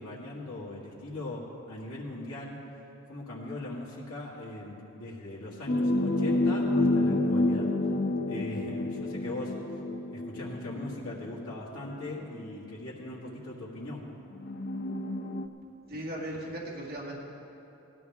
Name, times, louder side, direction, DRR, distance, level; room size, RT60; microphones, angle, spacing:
voice 1, 0.0-2.7 3.1-7.8 8.3-14.1, left 1 dB, 80° left, -6 dB, 2.0 m, -40 dB
sound 1, 5.7-11.6 12.5-12.6 14.4-15.5, left 2 dB, 45° left, 0.5 m, -29 dB
voice 2, 15.9-17.2, right 1 dB, 45° right, -5 dB, 2.0 m, -37 dB
17.5 x 12.5 x 3.6 m, 2.8 s
head